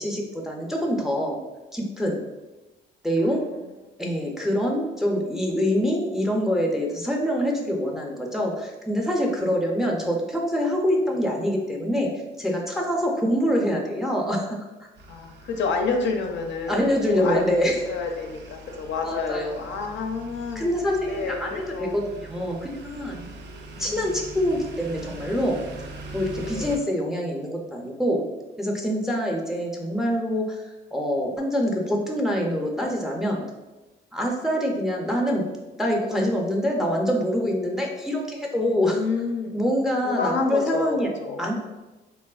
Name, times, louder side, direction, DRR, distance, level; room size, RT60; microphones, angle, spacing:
voice 1, 0.0-1.4 1.7-2.2 3.0-3.4 4.0-12.1 12.4-14.6 16.7-17.7 19.0-19.6 20.6-23.3 23.8-25.6 26.1-28.2 28.6-33.4 34.1-35.4 35.8-39.0 39.5-41.1 41.4-41.5, equal, ahead, 0 dB, 0.4 m, -25 dB
voice 2, 3.2-3.6 11.1-11.2 15.1-20.8 21.1-21.9 23.8-24.1 26.4-26.7 38.9-39.6 40.0-41.4, left 4 dB, 65° left, 3 dB, 0.4 m, -29 dB
sound 1, 15.0-26.8, right 2 dB, 60° right, 0.4 m, -42 dB
3.0 x 2.0 x 2.3 m, 1.1 s
cardioid pair, 90°, 20 cm